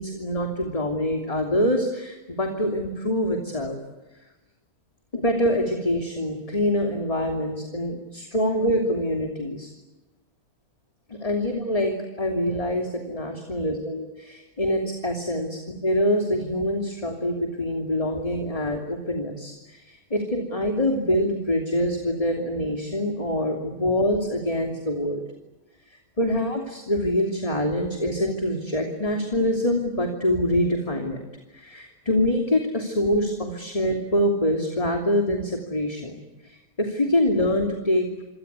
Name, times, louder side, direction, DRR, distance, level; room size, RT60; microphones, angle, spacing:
voice 1, 0.0-3.8 5.1-9.7 11.1-14.0 14.3-15.5 15.8-25.2 25.9-31.2 31.5-36.2 36.4-38.2, left 1 dB, 20° left, 3 dB, 3.0 m, -25 dB
28.0 x 25.0 x 8.3 m, 1.1 s
omnidirectional pair, 1.8 m